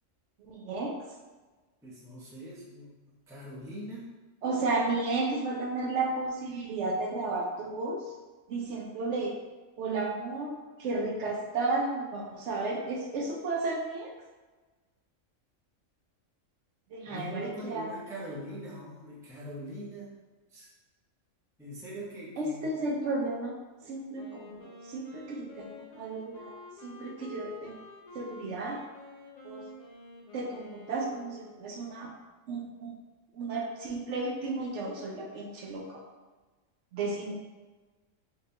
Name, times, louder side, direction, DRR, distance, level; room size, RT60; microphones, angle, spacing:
voice 1, 0.4-0.9 4.4-8.0 8.5-9.3 9.8-14.1 16.9-17.9 22.4-23.5 23.9-25.7 25.9-26.5 26.8-27.8 28.1-28.8 29.4-29.6 30.3-32.1 32.5-32.9 33.3-36.0 36.9-37.3, right 3 dB, 70° right, -1 dB, 0.9 m, -33 dB
voice 2, 1.8-2.9 3.3-4.1 17.0-20.1 20.5-20.7 21.6-22.7 23.8-23.9, right 1 dB, 5° right, -6 dB, 0.5 m, -42 dB
Wind instrument woodwind instrument, 24.1-31.8, left 2 dB, 80° left, 0.3 m, -49 dB
3.6 x 2.8 x 3.2 m, 1.3 s
omnidirectional pair, 1.4 m